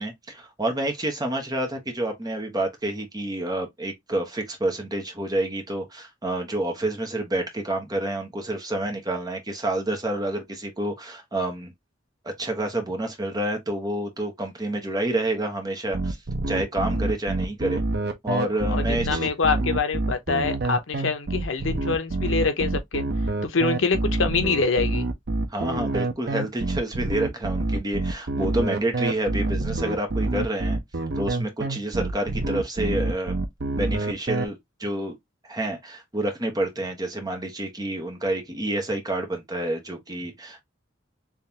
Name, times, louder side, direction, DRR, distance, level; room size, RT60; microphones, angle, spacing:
voice 1, 0.0-11.7 12.2-16.2 16.5-17.8 18.2-19.3 25.5-30.8 31.2-33.4 33.8-35.2 35.4-40.6, right 1 dB, 20° right, 1.1 m, -28 dB
sound 1, 15.9-34.4, right 2 dB, 55° right, 0.7 m, -27 dB
voice 2, 18.7-23.0 23.4-25.1, left 4 dB, 85° left, 0.8 m, -25 dB
3.5 x 3.3 x 2.8 m
head